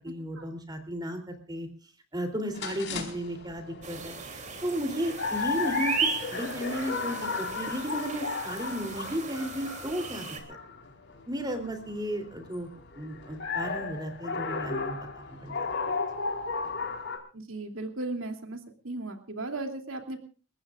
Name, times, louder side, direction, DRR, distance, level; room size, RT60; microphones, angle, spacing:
voice 1, 0.0-1.7 2.1-10.6 11.3-12.7 13.0-15.5, equal, 20° right, 6 dB, 3.4 m, -34 dB
sound 1, 2.5-17.2, left 4 dB, 60° left, 4.5 m, -35 dB
sound 2, 3.8-10.4, right 5 dB, 35° right, 3.1 m, -36 dB
voice 2, 17.3-18.6 18.8-20.2, right 2 dB, 70° right, 5 dB, 3.0 m, -36 dB
30.0 x 15.0 x 2.5 m, 0.37 s
head